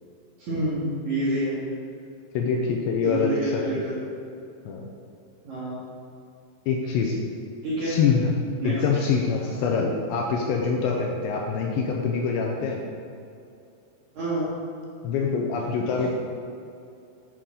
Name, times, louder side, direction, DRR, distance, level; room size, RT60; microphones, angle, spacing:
voice 1, 0.4-1.6 3.0-3.9 5.4-5.8 7.6-8.0 8.6-8.7 14.1-14.5 15.6-15.7 15.9-16.1, right 1 dB, 50° right, -9 dB, 2.4 m, -28 dB
voice 2, 2.3-3.8 4.7-4.9 6.7-7.2 7.8-8.3 8.6-12.8 15.0-16.1, left 5 dB, 80° left, 0 dB, 2.7 m, -25 dB
9.0 x 8.5 x 3.8 m, 2.6 s
omnidirectional pair, 5.6 m